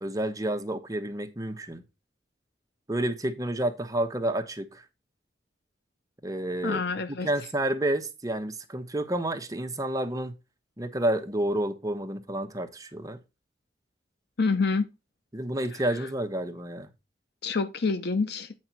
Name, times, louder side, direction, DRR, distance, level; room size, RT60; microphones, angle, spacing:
voice 1, 0.0-1.8 2.9-4.8 6.2-6.8 7.2-10.4 10.8-13.2 15.3-16.9, right 1 dB, 20° right, 1.0 m, -30 dB
voice 2, 6.6-7.3 14.4-14.9 17.4-18.5, left 4 dB, 65° left, 0.7 m, -27 dB
8.7 x 5.1 x 4.4 m
head